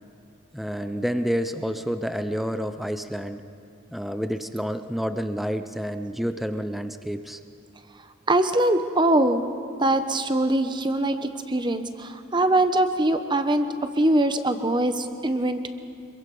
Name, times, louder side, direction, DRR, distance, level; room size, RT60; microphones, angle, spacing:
voice 1, 0.5-3.4 3.9-7.4, equal, ahead, 9 dB, 0.6 m, -29 dB
voice 2, 8.3-9.4 9.8-13.7 14.0-15.7, right 1 dB, 20° right, 9 dB, 1.0 m, -22 dB
25.5 x 22.5 x 5.5 m, 2.6 s
head